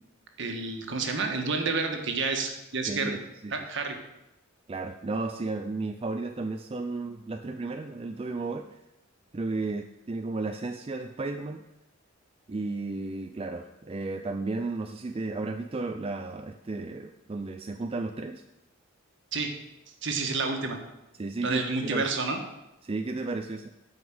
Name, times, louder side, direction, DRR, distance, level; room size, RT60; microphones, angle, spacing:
voice 1, 0.4-3.2 3.5-4.0 19.3-19.5 20.0-20.8 21.4-22.4, right 4 dB, 60° right, 4 dB, 1.5 m, -29 dB
voice 2, 2.9-3.2 3.4-3.7 4.7-8.8 9.3-11.6 12.5-18.4 21.1-22.1 22.8-23.7, right 3 dB, 25° right, 6 dB, 0.4 m, -33 dB
9.4 x 5.3 x 7.8 m, 0.94 s
head